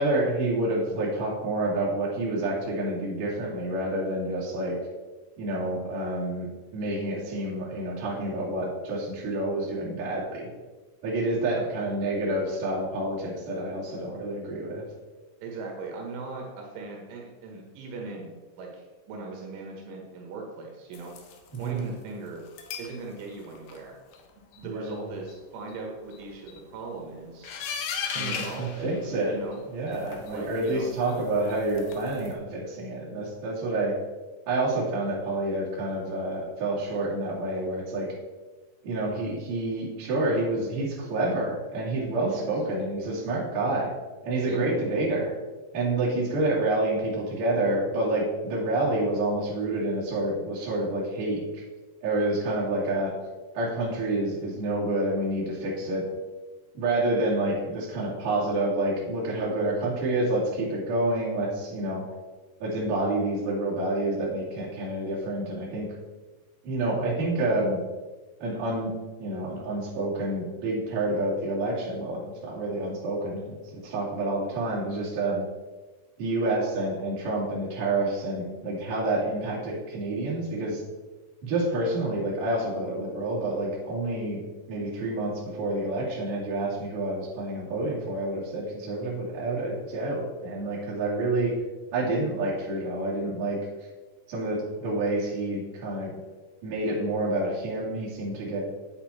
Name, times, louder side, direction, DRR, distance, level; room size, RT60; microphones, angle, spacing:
voice 1, 0.0-4.7 5.4-10.5 11.0-14.8 21.5-21.9 24.6-25.0 28.1-29.4 29.7-33.9 34.5-38.1 38.8-43.9 44.2-45.3 45.7-51.6 52.0-53.1 53.5-56.0 56.7-62.0 62.6-65.9 66.6-67.8 68.4-68.9 69.2-75.4 76.2-80.8 81.4-84.4 84.7-91.5 91.9-93.6 94.3-96.1 96.6-98.6, right 2 dB, 50° right, -6 dB, 3.8 m, -28 dB
voice 2, 15.4-21.1 21.6-22.4 22.8-23.9 24.6-27.6 28.1-28.9 29.3-29.6 30.3-30.9 42.3-42.6 44.5-44.7, right 3 dB, 80° right, 0 dB, 3.8 m, -39 dB
sound 1, 20.9-21.8 22.5-23.0 23.3-23.8 24.1-24.2 24.5-24.6 24.9-25.0 25.3-25.4 25.7-25.8 26.1-26.6 27.4-29.6 29.9-32.3, left 6 dB, 85° left, 3.5 m, -38 dB
8.5 x 8.3 x 4.3 m, 1.3 s
omnidirectional pair, 5.5 m